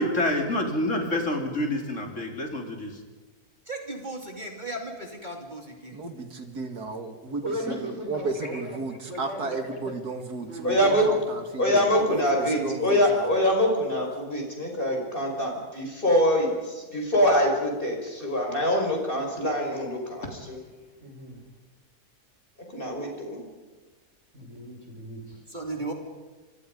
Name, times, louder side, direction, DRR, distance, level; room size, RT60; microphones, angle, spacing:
voice 1, 0.0-3.0, left 1 dB, 50° left, 2 dB, 4.0 m, -27 dB
voice 2, 3.7-6.0 25.5-25.9, right 2 dB, 30° right, 2 dB, 3.0 m, -36 dB
voice 3, 5.9-11.9 12.4-13.4, right 3 dB, 85° right, 6 dB, 2.8 m, -34 dB
voice 4, 7.4-8.8 9.0-9.9 10.4-11.2 11.9-12.6 21.0-21.4 24.3-25.4, equal, 50° right, 2 dB, 5.7 m, -37 dB
voice 5, 10.6-11.2 11.6-20.6 22.7-23.4, equal, 35° left, 1 dB, 5.8 m, -24 dB
27.5 x 25.0 x 5.4 m, 1.3 s
omnidirectional pair, 1.6 m